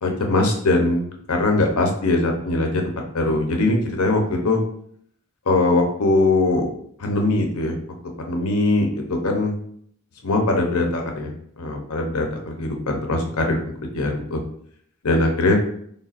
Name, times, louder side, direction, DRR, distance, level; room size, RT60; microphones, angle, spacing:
voice 1, 0.0-4.6 5.5-6.7 7.0-7.7 8.2-9.5 10.2-14.4 15.0-15.5, left 2 dB, 75° left, 2 dB, 0.8 m, -21 dB
4.1 x 3.4 x 2.5 m, 0.65 s
head